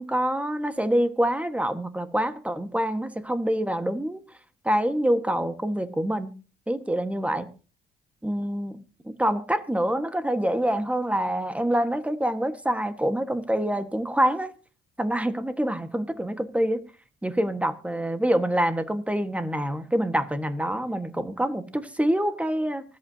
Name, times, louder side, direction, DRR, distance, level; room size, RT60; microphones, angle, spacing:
voice 1, 0.0-4.2 4.6-6.3 6.7-7.5 8.2-8.8 9.0-14.5 15.0-16.8 17.2-22.8, right 1 dB, 5° right, 1.5 m, -26 dB
25.0 x 8.5 x 2.8 m
cardioid pair, 90°, 20 cm